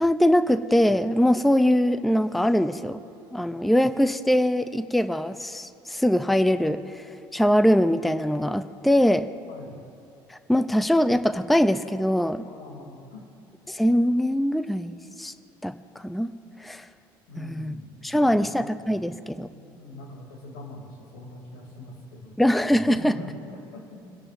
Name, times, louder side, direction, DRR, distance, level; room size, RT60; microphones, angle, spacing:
voice 1, 0.0-3.0 3.3-9.3 10.3-12.4 13.7-15.3 15.6-16.3 16.6-16.9 17.4-17.7 18.0-19.5 22.4-23.2, equal, ahead, 11 dB, 0.5 m, -22 dB
voice 2, 9.5-9.8 12.4-13.3 17.3-18.6 19.4-22.3 22.8-24.2, left 2 dB, 85° left, 0 dB, 2.9 m, -42 dB
26.5 x 11.0 x 2.6 m, 2.5 s
hypercardioid pair, 75°, 11 cm